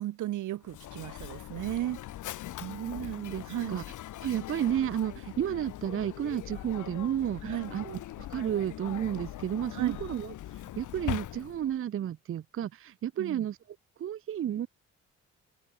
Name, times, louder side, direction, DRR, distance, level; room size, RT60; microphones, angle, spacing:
voice 1, 0.0-2.0 3.5-3.8 7.4-7.7 9.7-10.0 13.2-13.4, right 14 dB, 80° right, 1.9 m, -34 dB
Mechanisms, 0.6-11.8, left 13 dB, 80° left, 2.7 m, -41 dB
voice 2, 2.6-3.8 4.2-13.6 14.0-14.7, right 10 dB, 45° right, 0.6 m, -32 dB
cardioid pair, 90°, 30 cm